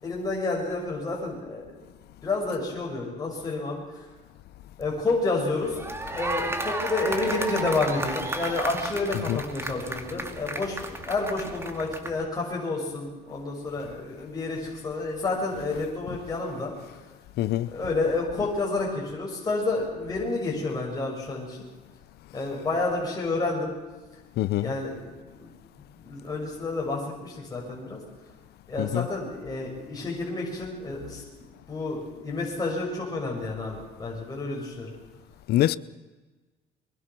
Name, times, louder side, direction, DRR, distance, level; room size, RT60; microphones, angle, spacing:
voice 1, 0.0-1.6 2.2-4.1 4.8-17.1 17.7-21.6 22.3-23.7 24.6-25.5 26.0-28.0 28.7-34.9, left 3 dB, 20° left, 6.6 m, -30 dB
sound 1, 5.6-12.2, right 2 dB, 15° right, 2.4 m, -33 dB
voice 2, 17.4-17.7 24.4-24.7 28.8-29.1 35.5-35.8, left 14 dB, 70° left, 0.8 m, -24 dB
23.5 x 22.0 x 6.2 m
cardioid pair, 110°, 17 cm